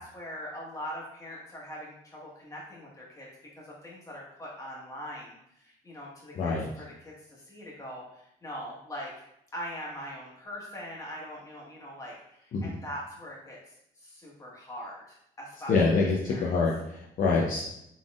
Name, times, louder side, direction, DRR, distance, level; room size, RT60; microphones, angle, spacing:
voice 1, 0.0-3.3 3.5-9.2 9.5-13.6 14.0-16.5, equal, 20° left, -5 dB, 1.3 m, -42 dB
voice 2, 6.3-6.7 12.5-12.6 15.7-17.6, left 4 dB, 50° left, -2 dB, 0.6 m, -25 dB
4.1 x 3.4 x 2.4 m, 0.78 s
cardioid pair, 110°, 17 cm